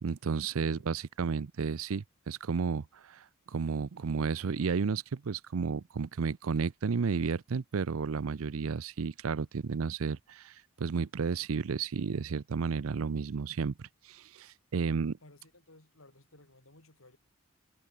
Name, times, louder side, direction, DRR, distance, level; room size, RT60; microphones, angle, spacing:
voice 1, 0.0-15.2, right 5 dB, 75° right, 0.5 m, -32 dB
voice 2, 15.2-17.2, left 2 dB, 70° left, 5.1 m, -58 dB
head